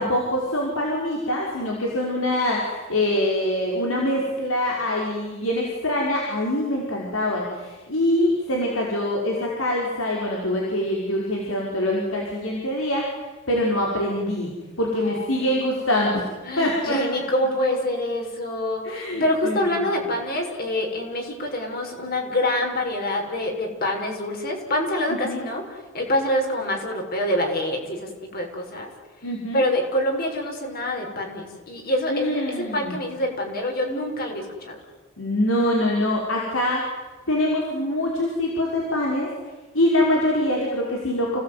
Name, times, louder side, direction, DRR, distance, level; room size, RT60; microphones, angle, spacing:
voice 1, 0.0-13.0 13.5-14.5 14.8-16.2 16.6-17.0 18.8-19.8 25.2-25.4 29.2-29.6 32.1-33.0 35.2-36.8 37.3-39.3 39.7-41.4, left 1 dB, 75° left, -2 dB, 5.4 m, -24 dB
voice 2, 14.8-15.5 16.4-28.9 29.5-34.8, left 1 dB, 50° left, 2 dB, 6.3 m, -26 dB
29.5 x 19.0 x 9.5 m, 1.2 s
head